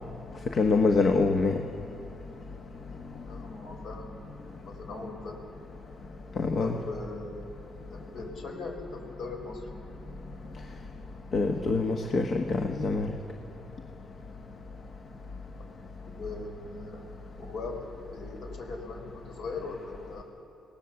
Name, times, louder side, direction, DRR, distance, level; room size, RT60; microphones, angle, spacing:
voice 1, 0.5-1.6 6.4-6.7 11.3-13.1, left 3 dB, 50° left, 4 dB, 1.2 m, -25 dB
voice 2, 3.3-5.4 6.6-7.5 7.9-9.7 16.2-17.1 17.5-17.9 18.1-20.2, left 3 dB, 70° left, 2 dB, 4.3 m, -40 dB
24.0 x 18.0 x 7.0 m, 2.8 s
cardioid pair, 90°, 0 cm